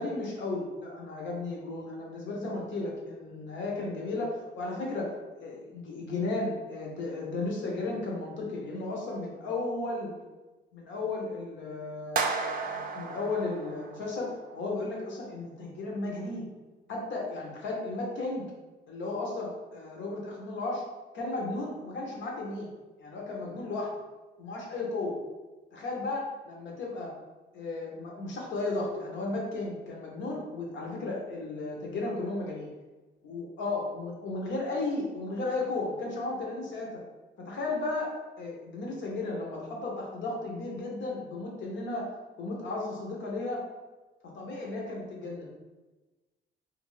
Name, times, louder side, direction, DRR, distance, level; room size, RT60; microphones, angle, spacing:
voice 1, 0.0-10.1 10.7-16.5 16.9-18.5 18.9-20.8 21.1-22.7 23.0-23.9 24.4-25.2 25.7-27.1 27.5-32.7 33.2-37.0 37.4-38.1 38.4-42.1 42.4-43.6 44.3-45.5, left 2 dB, 70° left, -1 dB, 0.9 m, -34 dB
sound 1, 12.2-14.4, right 5 dB, 45° right, 0.4 m, -33 dB
2.5 x 2.5 x 3.1 m, 1.2 s
cardioid pair, 90°, 20 cm